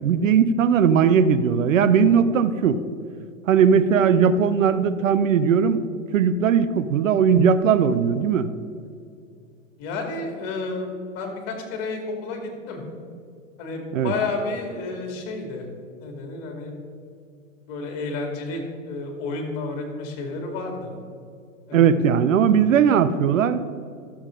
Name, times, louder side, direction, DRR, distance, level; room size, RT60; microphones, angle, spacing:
voice 1, 0.0-2.8 3.5-5.8 6.1-8.5 13.9-14.1 21.7-23.6, right 7 dB, 80° right, 13 dB, 0.7 m, -18 dB
voice 2, 9.8-12.8 13.6-15.7 16.0-16.7 17.7-20.9 21.7-21.9, left 3 dB, 50° left, 2 dB, 2.4 m, -31 dB
13.0 x 7.1 x 3.8 m, 2.3 s
hypercardioid pair, 110°, 39 cm